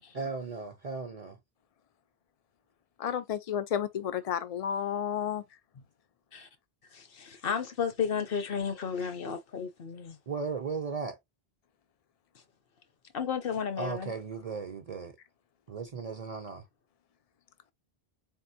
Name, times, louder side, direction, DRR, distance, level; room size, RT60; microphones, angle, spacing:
voice 1, 0.1-1.4 10.3-11.2 13.8-15.1 15.7-16.6, right 4 dB, 45° right, 0.6 m, -36 dB
voice 2, 3.0-5.4, left 9 dB, 45° left, 0.6 m, -31 dB
voice 3, 6.9-10.2 13.1-14.1, left 7 dB, 65° left, 1.1 m, -33 dB
4.1 x 3.7 x 2.7 m
omnidirectional pair, 1.0 m